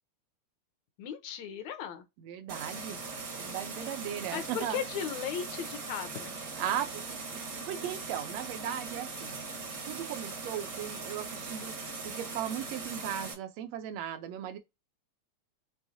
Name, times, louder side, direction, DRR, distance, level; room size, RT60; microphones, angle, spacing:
voice 1, 1.0-2.0 4.3-6.4, left 8 dB, 75° left, 2.1 m, -36 dB
voice 2, 2.2-3.0 3.4-4.8 6.6-9.4 9.8-11.7 12.0-14.6, right 10 dB, 70° right, 1.7 m, -37 dB
sound 1, 2.5-13.3, right 4 dB, 50° right, 1.0 m, -40 dB
6.4 x 3.1 x 2.7 m
omnidirectional pair, 3.4 m